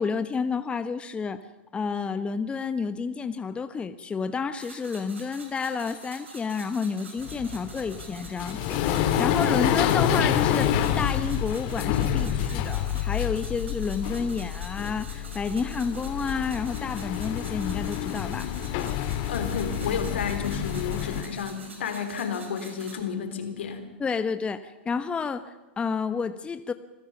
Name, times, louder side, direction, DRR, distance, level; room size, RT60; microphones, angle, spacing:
voice 1, 0.0-1.4 1.7-18.5 24.0-26.7, left 5 dB, 15° left, 11 dB, 0.9 m, -30 dB
sound 1, 4.5-23.0, right 3 dB, 85° right, 5.1 m, -47 dB
sound 2, 7.2-21.2, left 10 dB, 50° left, 2.1 m, -28 dB
voice 2, 19.3-23.8, left 6 dB, 75° left, 7 dB, 3.6 m, -31 dB
26.5 x 15.5 x 7.1 m, 1.1 s
hypercardioid pair, 105°, 6 cm